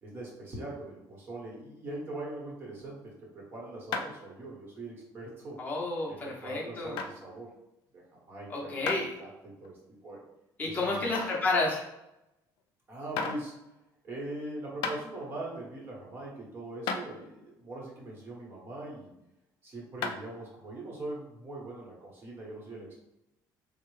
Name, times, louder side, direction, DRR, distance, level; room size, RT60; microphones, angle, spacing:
voice 1, 0.0-5.6 6.1-7.5 7.9-8.9 9.2-10.2 10.6-11.0 12.9-13.5 14.0-19.1 19.6-23.0, right 2 dB, 30° right, -3 dB, 1.0 m, -41 dB
sound 1, 3.9-4.3 4.8-4.9 5.7-5.8 7.0-7.1 8.9-9.0 9.6-9.7 11.1-11.5 12.6-12.7 13.2-13.4 14.4-14.5 14.8-15.0 16.3-16.4 16.9-17.0 20.0-20.3, left 5 dB, 85° left, 0.4 m, -33 dB
voice 2, 5.6-7.0 8.5-9.1 10.6-11.8, left 2 dB, 20° left, -3 dB, 0.7 m, -30 dB
4.4 x 2.0 x 3.1 m, 0.89 s
cardioid pair, 170°, 8 cm